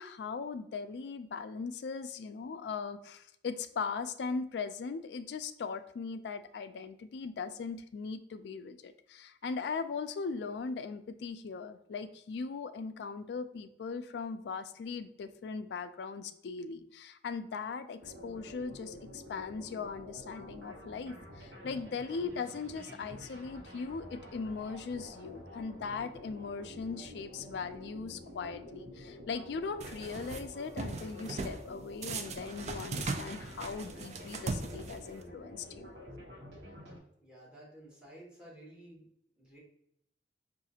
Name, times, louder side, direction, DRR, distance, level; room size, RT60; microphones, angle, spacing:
voice 1, 0.0-35.9, left 5 dB, 65° left, 10 dB, 0.3 m, -39 dB
sound 1, 18.0-37.0, left 1 dB, 70° right, 1.0 m, -49 dB
sound 2, 29.8-30.4 30.8-31.6 32.0-35.2, right 3 dB, 40° right, 0.4 m, -38 dB
voice 2, 37.2-39.1 39.4-39.6, right 1 dB, 5° right, -5 dB, 1.3 m, -53 dB
4.8 x 2.5 x 2.7 m, 0.73 s
head